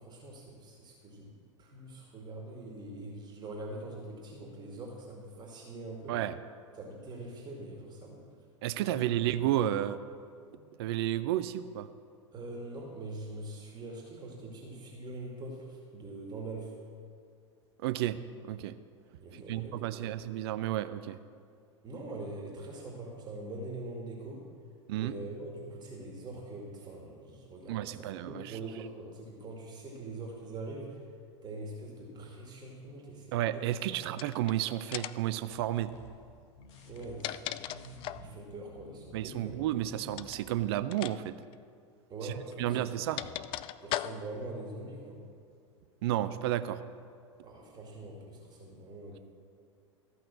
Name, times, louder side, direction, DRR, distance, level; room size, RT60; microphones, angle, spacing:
voice 1, 0.0-6.2 6.8-8.3 12.3-16.7 19.2-20.2 21.8-24.5 24.9-31.0 31.4-34.0 36.9-39.6 42.1-43.0 43.8-45.2 47.4-49.2, right 2 dB, 25° right, -1 dB, 2.3 m, -43 dB
voice 2, 8.6-10.0 10.8-11.9 17.8-18.8 19.3-21.2 24.9-25.2 27.7-28.6 33.3-35.9 39.1-41.3 42.2-42.3 42.6-43.2 46.0-46.8, right 13 dB, 50° right, 13 dB, 0.6 m, -32 dB
sound 1, 34.1-34.5 34.9-35.3 36.8-38.3 40.1-40.4 40.9-41.2 41.4-41.5 42.5-44.5, left 14 dB, 30° left, 0.4 m, -38 dB
sound 2, 35.5-40.7, left 3 dB, 60° left, 1.8 m, -54 dB
14.0 x 5.8 x 7.6 m, 2.3 s
figure-of-eight pair, 90°, 16 cm